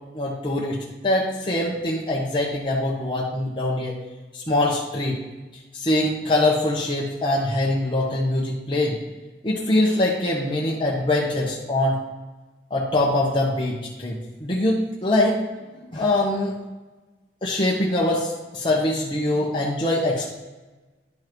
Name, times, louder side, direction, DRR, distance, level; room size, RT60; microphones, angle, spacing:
voice 1, 0.1-4.0 4.3-5.2 5.7-9.0 9.4-12.0 12.7-15.4 15.9-16.6 17.4-20.4, left 1 dB, 30° left, -4 dB, 1.0 m, -23 dB
10.5 x 5.6 x 3.1 m, 1.2 s
head